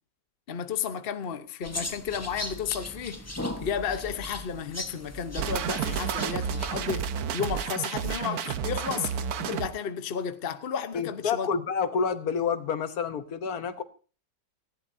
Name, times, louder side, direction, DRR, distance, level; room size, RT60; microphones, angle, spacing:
voice 1, 0.5-9.1 9.4-11.5, left 7 dB, 40° left, 1.0 m, -33 dB
sound 1, 1.6-6.9, left 1 dB, 15° left, 0.7 m, -38 dB
sound 2, 5.4-9.7, right 8 dB, 65° right, 1.2 m, -31 dB
voice 2, 10.9-13.8, left 6 dB, 65° left, 1.4 m, -28 dB
18.5 x 15.0 x 2.7 m
omnidirectional pair, 1.8 m